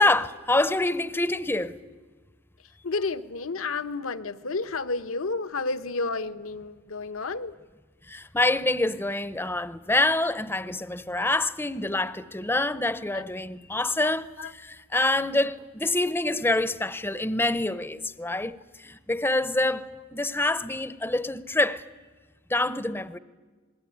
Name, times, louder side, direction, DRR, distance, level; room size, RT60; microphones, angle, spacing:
voice 1, 0.0-1.8 8.1-19.9 20.1-21.8 22.5-23.2, left 2 dB, 10° left, 0.7 m, -26 dB
voice 2, 2.8-7.5 13.1-13.2 14.0-14.1 14.4-14.5 16.3-16.4, left 3 dB, 70° left, 1.0 m, -31 dB
27.5 x 21.0 x 9.4 m
head